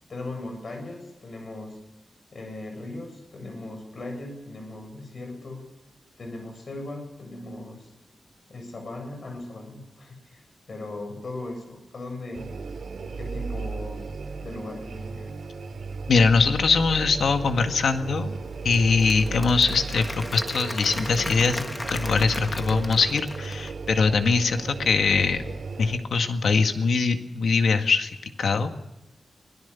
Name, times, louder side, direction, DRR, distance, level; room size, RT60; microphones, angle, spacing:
voice 1, 0.1-1.8 2.3-5.6 6.2-7.9 8.5-12.6 13.2-14.1 14.4-15.4, left 2 dB, 55° left, 4 dB, 7.6 m, -38 dB
sound 1, 12.3-26.0, right 4 dB, 75° right, 3.4 m, -35 dB
voice 2, 16.1-18.4 18.6-25.4 25.8-28.1 28.4-28.7, left 4 dB, 90° left, 6 dB, 1.9 m, -22 dB
Applause / Crowd, 18.5-23.9, left 1 dB, 15° left, 1.4 m, -37 dB
24.5 x 18.0 x 7.1 m, 0.94 s
wide cardioid pair, 140°, 0 cm